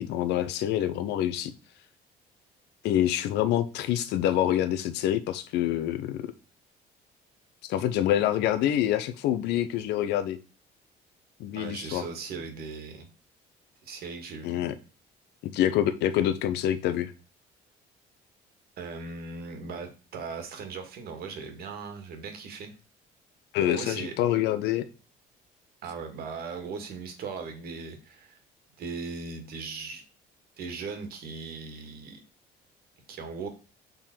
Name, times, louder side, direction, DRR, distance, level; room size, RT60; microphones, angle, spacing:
voice 1, 0.0-1.5 2.8-6.3 7.7-10.4 11.4-12.0 14.4-14.7 15.4-17.1 23.5-24.8, left 11 dB, 85° left, 12 dB, 0.7 m, -26 dB
voice 2, 11.6-13.1 13.8-14.6 18.8-22.7 23.6-24.1 25.8-28.4 28.8-30.0 30.6-32.2 33.1-33.5, right 4 dB, 65° right, 6 dB, 1.8 m, -38 dB
6.8 x 3.8 x 4.4 m, 0.34 s
cardioid pair, 110°, 17 cm